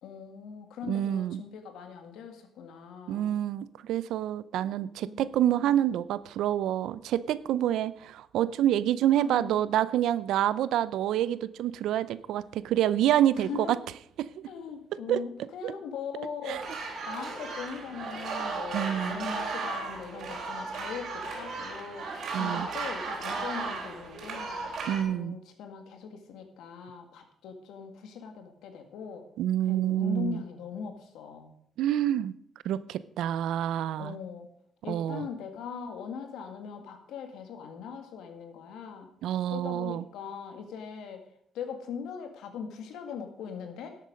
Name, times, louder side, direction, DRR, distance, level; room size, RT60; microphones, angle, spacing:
voice 1, 0.0-3.4 5.0-5.8 9.1-9.6 13.4-13.8 14.5-24.6 25.1-29.3 29.6-31.5 34.0-34.5 34.8-39.1 39.5-41.3 41.5-44.0, left 7 dB, 85° left, 6 dB, 1.9 m, -40 dB
voice 2, 0.9-1.4 3.1-13.8 14.2-14.5 15.1-15.2 15.6-15.7 16.5-16.6 18.7-19.2 22.3-22.7 24.9-25.4 29.4-30.4 31.8-32.3 32.6-34.1 34.9-35.3 39.2-40.0, right 11 dB, 85° right, 17 dB, 0.5 m, -27 dB
sound 1, 16.5-25.0, right 4 dB, 65° right, 3.9 m, -35 dB
12.0 x 8.4 x 5.2 m, 0.69 s
cardioid pair, 90°, 0 cm